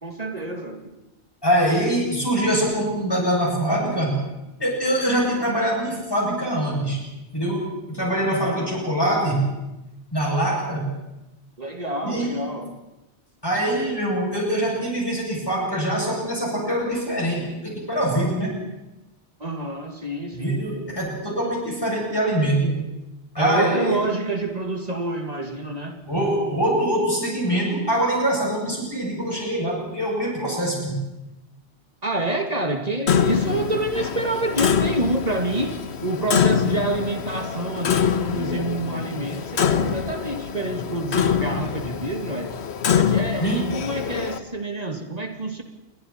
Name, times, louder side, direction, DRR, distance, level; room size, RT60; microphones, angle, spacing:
voice 1, 0.0-0.8 8.4-8.9 11.6-12.8 19.4-20.6 23.4-26.0 32.0-42.6 42.9-45.6, right 2 dB, 35° right, 4 dB, 2.2 m, -28 dB
voice 2, 1.4-4.2 4.6-7.0 7.3-9.5 10.1-10.9 12.0-12.4 13.4-18.6 20.3-22.9 23.3-24.0 26.1-31.0 43.4-43.7, right 1 dB, 20° left, -3 dB, 7.8 m, -23 dB
Clock, 33.1-44.4, left 8 dB, 80° left, 1.3 m, -25 dB
29.0 x 22.0 x 4.4 m, 0.98 s
omnidirectional pair, 1.1 m